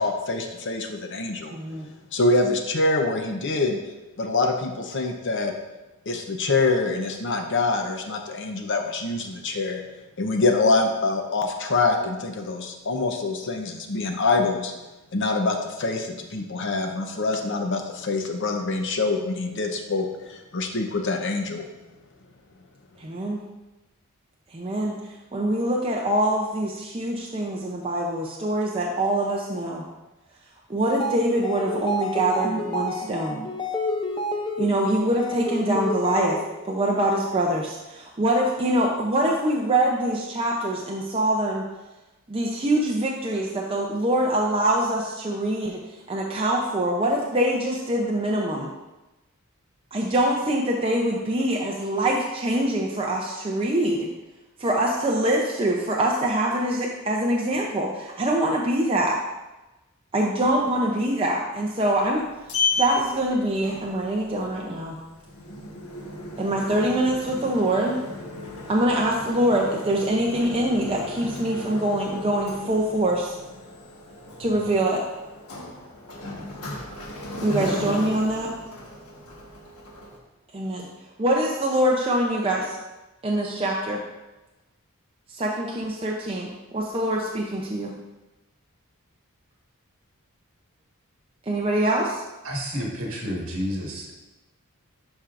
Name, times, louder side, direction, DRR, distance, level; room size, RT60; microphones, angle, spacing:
voice 1, 0.0-1.5 2.1-3.8 4.2-5.5 6.1-9.8 10.2-14.7 15.1-21.6, left 3 dB, 55° left, 4 dB, 0.8 m, -25 dB
voice 2, 1.5-1.9 23.0-23.4 24.5-24.9 25.3-29.8 30.7-33.4 34.6-36.4 36.6-41.6 42.3-45.8 46.1-48.7 49.9-54.1 54.6-59.2 60.1-62.2 62.8-65.0 66.4-68.0 68.7-73.3 74.4-75.0 77.4-78.5 80.5-80.9 81.2-82.8 83.2-84.0 85.3-87.9 91.5-92.2, right 1 dB, 25° right, -2 dB, 0.6 m, -24 dB
sound 1, 30.9-36.6, left 1 dB, 20° left, 0.6 m, -29 dB
Sliding door, 61.9-80.2, left 3 dB, 90° left, 1.3 m, -35 dB
voice 3, 92.4-94.1, equal, 65° right, -1 dB, 1.6 m, -30 dB
11.0 x 4.6 x 2.5 m, 1.0 s
head